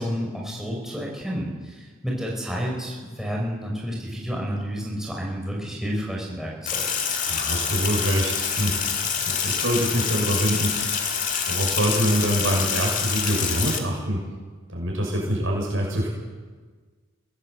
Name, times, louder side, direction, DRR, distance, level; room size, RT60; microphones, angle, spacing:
voice 1, 0.0-6.8, equal, ahead, -3 dB, 5.4 m, -30 dB
Sink (filling or washing), 6.7-13.8, left 6 dB, 40° left, 2.4 m, -26 dB
voice 2, 7.3-8.8 9.2-11.1 11.5-14.2 14.7-16.1, equal, 80° right, -2 dB, 6.3 m, -25 dB
22.5 x 17.5 x 8.0 m, 1.4 s
head